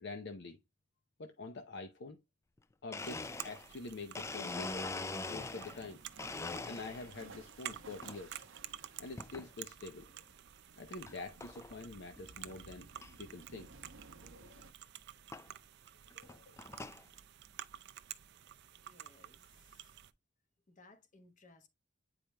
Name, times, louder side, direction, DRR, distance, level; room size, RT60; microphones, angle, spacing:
voice 1, 0.0-0.6 1.2-2.2 2.8-4.9 5.3-6.0 6.6-8.4 9.0-10.3 10.7-12.9 13.2-13.7 14.2-14.7 16.1-16.6, left 3 dB, 60° left, 0.6 m, -46 dB
Domestic sounds home sounds, 2.6-2.7 2.9-5.9 6.2-7.2 7.7-8.2 9.2-9.5 10.1-10.2 11.1-11.2 11.4-11.7 12.2-12.3 12.5-12.6 13.0-13.1 14.4-14.5 15.3-15.5 16.1-17.0, left 3 dB, 15° left, 0.3 m, -42 dB
sound 1, 3.0-20.1, right 11 dB, 60° right, 0.5 m, -51 dB
sound 2, 4.5-14.7, right 3 dB, 85° right, 0.8 m, -58 dB
voice 2, 18.8-19.9 20.7-21.7, left 2 dB, 40° left, 1.1 m, -62 dB
8.7 x 5.0 x 2.2 m
head